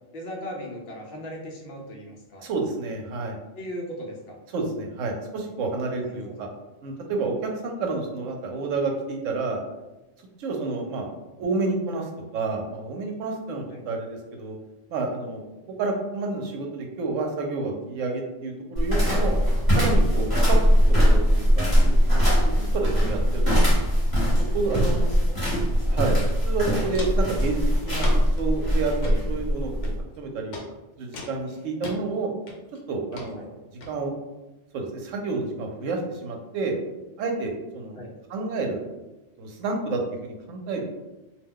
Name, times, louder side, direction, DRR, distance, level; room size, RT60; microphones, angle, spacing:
voice 1, 0.1-2.5 3.6-4.4 6.0-6.5 13.7-13.9 20.7-20.8 25.1-25.3 25.7-26.0 33.4-33.5 37.9-38.1, equal, 55° left, 0 dB, 0.8 m, -38 dB
voice 2, 2.4-3.4 4.5-6.5 6.8-9.6 10.4-11.1 11.4-14.5 14.9-15.4 15.8-19.4 19.8-22.3 22.6-23.4 24.5-25.1 25.9-26.2 26.4-28.1 28.4-29.9 30.2-30.6 31.0-32.3 32.9-33.6 33.9-34.2 34.7-36.7 37.2-38.0 38.3-38.8 39.4-40.8, right 3 dB, 90° right, 2 dB, 1.0 m, -29 dB
sound 1, 18.8-30.0, equal, 20° left, 1.0 m, -21 dB
Walk footsteps, 26.0-26.1 26.4-27.3 28.0-28.4 28.9-29.2 29.8-30.2 30.5-30.7 31.1-32.0 32.5-32.8 33.1-33.3 33.8-33.9, left 3 dB, 80° left, 1.0 m, -37 dB
2.3 x 2.2 x 3.6 m, 1.0 s
omnidirectional pair, 1.3 m